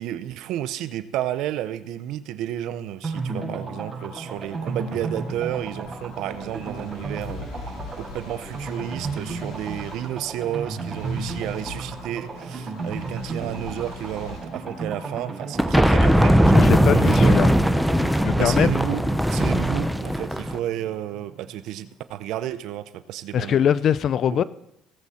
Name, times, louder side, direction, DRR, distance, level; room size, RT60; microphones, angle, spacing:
voice 1, 0.0-17.4 18.4-23.6 24.3-24.4, right 12 dB, 70° right, 0.7 m, -32 dB
sound 1, 3.0-21.6 21.9-22.0 22.3-22.4, right 3 dB, 25° right, 5.6 m, -33 dB
sound 2, 4.4-15.3, left 4 dB, 70° left, 4.7 m, -43 dB
sound 3, 15.6-20.6, equal, ahead, 0.7 m, -19 dB
voice 2, 16.5-17.5 18.2-18.7 23.3-24.4, left 9 dB, 50° left, 0.5 m, -21 dB
18.0 x 8.2 x 4.3 m
cardioid pair, 100°, 0 cm